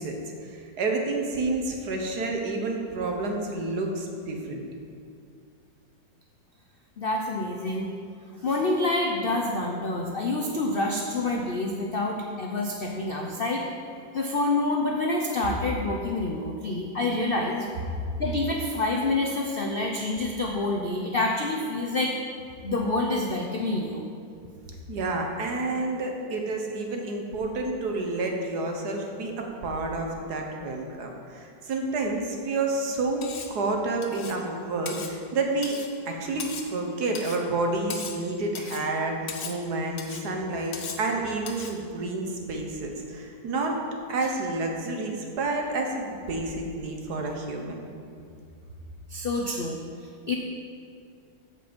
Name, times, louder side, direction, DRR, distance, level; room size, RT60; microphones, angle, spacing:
voice 1, 0.0-4.6 24.9-35.8 36.0-43.8 44.1-47.8, right 2 dB, 60° right, 2 dB, 1.6 m, -29 dB
voice 2, 7.0-7.9 8.4-13.6 14.1-17.7 18.2-22.1 22.6-24.0 49.1-49.8 50.3-50.4, left 2 dB, 75° left, 1 dB, 0.5 m, -27 dB
Cutlery silverware, 33.2-33.6 34.0-34.4 34.8-35.1 35.6-35.9 36.4-36.7 37.1-37.4 37.9-38.2 38.5-38.9 39.3-39.6 40.0-40.3 40.7-41.1 41.5-41.8, left 5 dB, 50° left, 0.9 m, -38 dB
14.5 x 5.3 x 5.3 m, 2.3 s
omnidirectional pair, 2.0 m